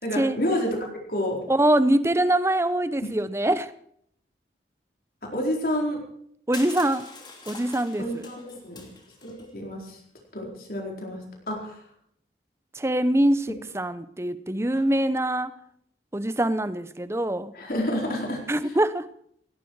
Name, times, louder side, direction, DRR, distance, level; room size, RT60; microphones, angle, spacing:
voice 1, 0.0-1.4 3.0-3.1 5.3-6.0 8.0-8.9 9.2-10.0 10.3-11.2 11.5-11.8 14.7-14.8 17.5-18.4, equal, 55° left, 0 dB, 4.3 m, -29 dB
voice 2, 1.5-3.7 6.5-7.1 7.5-8.3 12.7-15.5 16.1-17.5 18.5-19.1, right 1 dB, 15° right, 14 dB, 0.8 m, -24 dB
Crushing, 6.5-9.5, left 3 dB, 25° left, 2.9 m, -43 dB
18.0 x 17.0 x 4.7 m, 0.67 s
head